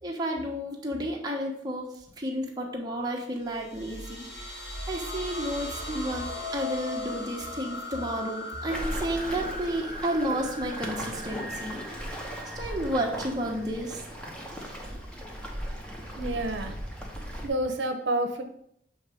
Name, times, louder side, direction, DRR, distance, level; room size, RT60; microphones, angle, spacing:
voice 1, 0.0-1.9 2.2-4.5 4.9-12.0 12.5-14.0, right 1 dB, 20° right, -1 dB, 0.9 m, -31 dB
sound 1, 3.5-14.1, left 2 dB, 70° left, 1.7 m, -39 dB
Waves surf, 8.7-17.5, equal, 5° left, 0.7 m, -37 dB
voice 2, 16.2-16.7 17.4-18.4, right 1 dB, 80° right, 6 dB, 0.6 m, -29 dB
7.0 x 2.9 x 4.9 m, 0.72 s
head